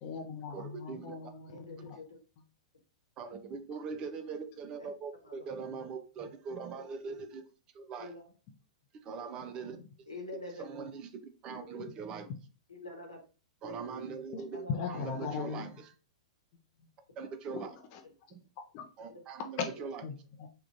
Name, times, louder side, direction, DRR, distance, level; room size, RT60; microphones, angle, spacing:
voice 1, 0.0-2.0 9.6-9.7 12.3-12.4 14.3-14.4 14.7-15.7 16.8-16.9 17.5-17.6 17.9-18.0 18.7-18.9 20.0-20.5, left 6 dB, 40° left, 0.5 m, -39 dB
voice 2, 0.5-1.2 3.2-7.5 7.7-8.1 9.0-9.8 10.6-11.1 11.4-12.3 13.6-15.7 17.2-17.7 19.0-20.0, right 5 dB, 30° right, 0.4 m, -41 dB
voice 3, 1.5-2.2 4.8-4.9 5.2-5.5 8.0-8.3 10.1-10.7 11.5-11.8 12.7-13.2 14.5-15.3, left 2 dB, 80° left, 1.1 m, -46 dB
3.6 x 2.2 x 2.6 m
figure-of-eight pair, 100°, 3 cm